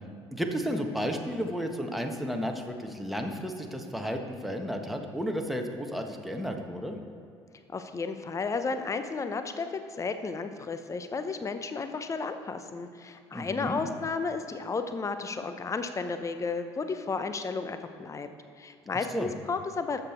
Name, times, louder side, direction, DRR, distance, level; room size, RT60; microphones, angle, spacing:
voice 1, 0.3-7.0 13.3-13.8 19.1-19.3, equal, ahead, 3 dB, 1.4 m, -32 dB
voice 2, 7.7-18.3 18.6-20.0, left 4 dB, 20° left, 9 dB, 0.8 m, -33 dB
13.5 x 6.9 x 4.5 m, 2.4 s
figure-of-eight pair, 55°, 14 cm